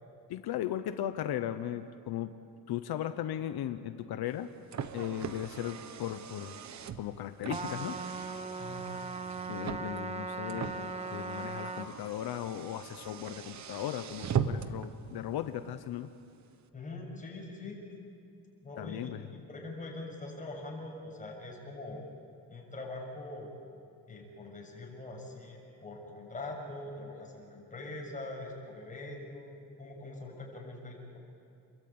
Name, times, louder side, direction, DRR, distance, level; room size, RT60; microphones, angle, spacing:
voice 1, 0.3-2.3 2.7-4.5 4.9-6.6 7.0-8.0 9.5-16.1 18.8-19.3, left 11 dB, 85° left, 9 dB, 1.0 m, -37 dB
Car, 4.3-14.9, right 7 dB, 50° right, 1.2 m, -39 dB
Trumpet, 7.5-11.9, right 4 dB, 15° right, 0.9 m, -38 dB
voice 2, 16.7-17.8 18.6-19.1 19.5-22.1 22.5-23.5 24.1-31.2, left 2 dB, 20° left, -1 dB, 6.8 m, -43 dB
29.5 x 22.5 x 8.8 m, 2.4 s
cardioid pair, 155°, 37 cm